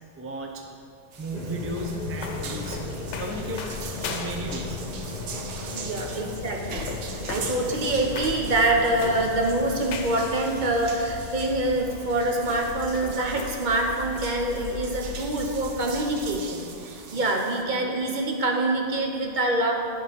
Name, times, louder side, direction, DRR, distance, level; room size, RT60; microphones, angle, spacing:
voice 1, 0.2-0.6 1.2-2.8 3.2-3.7 4.0-4.8 6.1-6.2, right 2 dB, 20° right, 1 dB, 0.4 m, -34 dB
sound 1, 1.1-16.4, left 5 dB, 85° left, 1.0 m, -38 dB
sound 2, 1.1-17.6, right 5 dB, 90° right, 1.0 m, -41 dB
sound 3, 1.3-13.4, left 3 dB, 50° left, 0.6 m, -38 dB
voice 2, 5.7-19.7, right 2 dB, 50° right, 1 dB, 0.8 m, -25 dB
10.5 x 3.8 x 5.0 m, 2.6 s
omnidirectional pair, 1.2 m